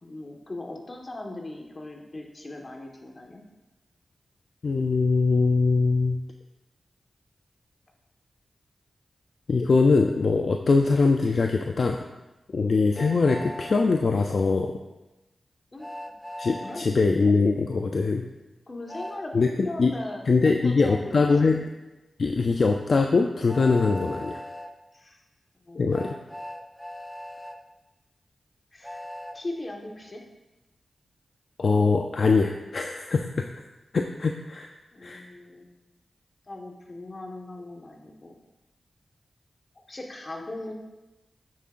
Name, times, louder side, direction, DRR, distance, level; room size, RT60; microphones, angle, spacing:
voice 1, 0.0-3.4 15.7-15.9 16.6-16.8 18.7-21.2 24.9-25.2 25.6-26.0 28.7-29.0 29.3-30.2 34.9-35.7 36.5-38.4 39.7-40.7, left 2 dB, 45° left, 1 dB, 1.5 m, -39 dB
voice 2, 4.6-6.2 9.5-12.0 12.5-14.8 16.4-18.3 19.3-19.9 20.3-21.6 22.2-24.4 25.8-26.1 31.6-33.5 33.9-34.7 35.0-35.2, left 4 dB, 65° left, 4 dB, 0.5 m, -22 dB
Train, 12.9-13.7 15.8-16.8 18.9-19.2 21.3-21.4 23.5-24.7 25.9-27.6 28.8-29.4, left 1 dB, ahead, 0.7 m, -38 dB
9.4 x 7.4 x 2.6 m, 1.0 s
cardioid pair, 45°, 0 cm